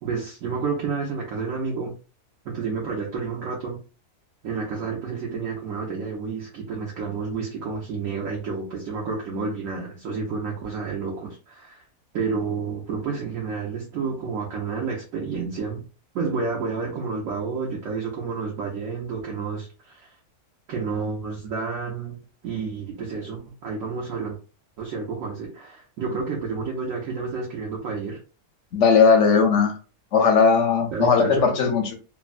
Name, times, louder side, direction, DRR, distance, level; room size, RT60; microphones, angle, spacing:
voice 1, 0.0-1.9 2.4-3.8 4.4-11.8 12.1-15.8 16.1-20.1 20.7-24.4 24.8-28.2 30.9-31.5, right 5 dB, 65° right, -2 dB, 1.0 m, -30 dB
voice 2, 28.7-29.7 30.1-31.9, left 5 dB, 60° left, 3 dB, 0.8 m, -18 dB
3.3 x 2.1 x 2.4 m, 0.35 s
omnidirectional pair, 1.7 m